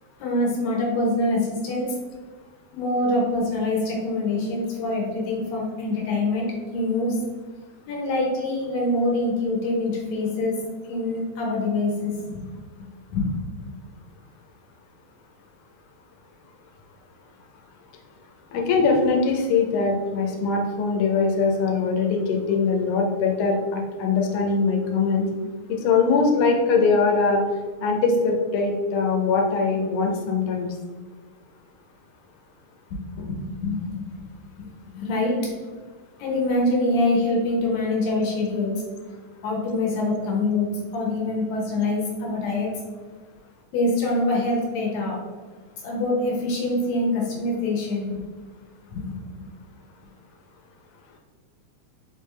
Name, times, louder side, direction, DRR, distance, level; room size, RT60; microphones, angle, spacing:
voice 1, 0.2-1.9 2.7-7.2 7.9-10.6 10.8-12.4 13.1-13.3 33.2-34.3 34.9-35.4 36.2-38.7 39.4-42.7 43.7-45.2 45.8-48.2 48.9-49.1, left 2 dB, 70° left, -2 dB, 2.0 m, -25 dB
voice 2, 18.5-25.3 25.7-27.4 27.8-30.7, left 4 dB, 90° left, 1 dB, 2.2 m, -22 dB
5.0 x 3.4 x 3.2 m, 1.4 s
omnidirectional pair, 3.4 m